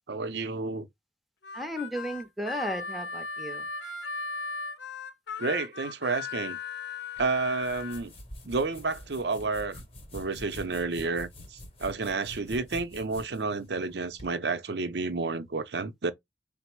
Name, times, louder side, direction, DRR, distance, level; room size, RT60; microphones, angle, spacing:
voice 1, 0.1-0.9 5.4-6.6 7.2-8.1 8.4-9.8 10.1-16.1, right 3 dB, 70° right, 0.6 m, -30 dB
Harmonica, 1.4-8.0, left 4 dB, 90° left, 0.7 m, -37 dB
voice 2, 1.5-3.7, equal, ahead, 0.6 m, -34 dB
sound 1, 7.2-14.3, left 1 dB, 35° left, 0.9 m, -46 dB
4.0 x 2.0 x 4.4 m
head